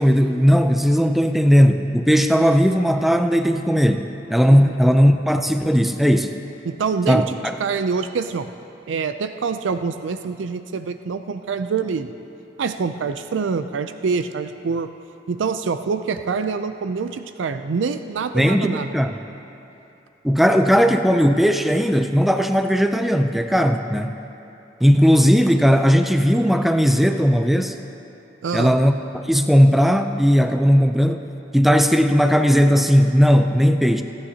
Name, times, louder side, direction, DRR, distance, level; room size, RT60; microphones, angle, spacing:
voice 1, 0.0-6.4 7.1-7.5 18.3-19.2 20.2-24.2 24.8-27.8 28.5-34.0, equal, ahead, 6 dB, 0.3 m, -17 dB
voice 2, 6.6-8.5 8.9-12.1 12.6-14.9 15.3-18.9 28.4-28.7, right 5 dB, 85° right, 9 dB, 0.4 m, -25 dB
27.0 x 9.7 x 2.8 m, 2.9 s
head